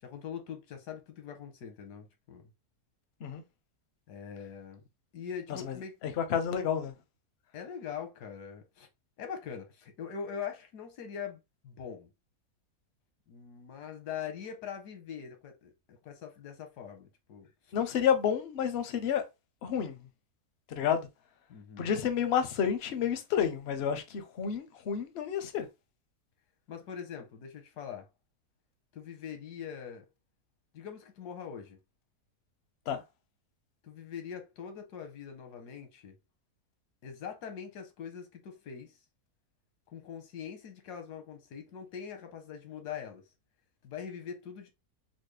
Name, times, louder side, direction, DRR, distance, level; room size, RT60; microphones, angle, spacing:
voice 1, 0.0-2.5 4.1-4.8 5.1-5.9 7.5-8.9 9.2-12.1 13.3-17.5 21.5-21.9 26.7-28.1 28.9-30.0 30.7-31.8 33.8-36.2 37.0-39.0 39.9-43.2 43.8-44.7, left 7 dB, 90° left, 1.4 m, -42 dB
voice 2, 6.2-6.9 17.7-19.2 19.6-19.9 20.8-21.1 21.8-25.7 32.9-33.0, left 8 dB, 60° left, 0.7 m, -30 dB
4.1 x 2.0 x 3.2 m
omnidirectional pair, 1.7 m